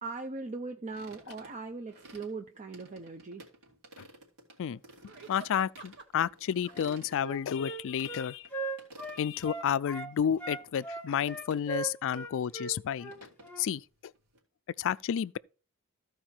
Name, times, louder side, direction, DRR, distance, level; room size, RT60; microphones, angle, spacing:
voice 1, 0.0-3.4, right 3 dB, 35° right, 0.6 m, -40 dB
sound 1, 0.9-2.3 2.7-4.6 4.8-8.1 8.4-8.5 8.8-9.5 9.9-10.0 10.6-10.9 11.1-11.9 12.1-12.2 12.5-14.4, right 1 dB, 85° right, 3.4 m, -53 dB
sound 2, 4.7-6.3 6.6-7.8 8.4-8.5, right 6 dB, 55° right, 1.8 m, -51 dB
voice 2, 5.3-8.5 9.2-13.1 13.6-13.8 14.8-15.4, left 8 dB, 60° left, 0.4 m, -31 dB
Wind instrument woodwind instrument, 6.7-10.1 10.4-13.7, right 3 dB, 10° left, 1.4 m, -39 dB
14.5 x 4.9 x 4.5 m
head